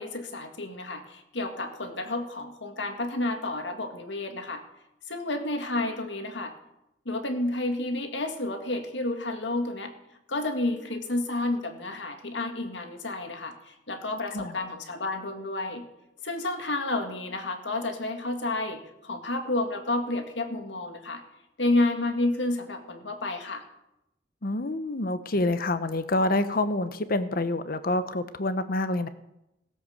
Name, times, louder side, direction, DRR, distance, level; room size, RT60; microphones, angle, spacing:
voice 1, 0.0-4.6 5.1-6.5 7.1-9.9 10.3-15.9 16.2-21.2 21.6-23.6, left 2 dB, 85° left, 6 dB, 1.9 m, -30 dB
voice 2, 24.4-29.1, left 2 dB, 55° left, 12 dB, 1.0 m, -27 dB
17.0 x 7.9 x 6.6 m, 0.87 s
head